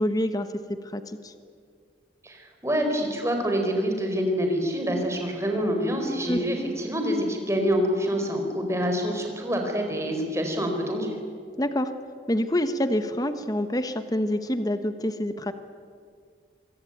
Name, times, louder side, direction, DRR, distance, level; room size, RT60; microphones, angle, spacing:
voice 1, 0.0-1.3 6.3-6.4 11.6-11.9 12.3-15.5, left 1 dB, 20° left, 9 dB, 1.2 m, -27 dB
voice 2, 2.2-11.1, equal, 15° right, 3 dB, 4.7 m, -26 dB
25.5 x 24.5 x 9.3 m, 2.1 s
head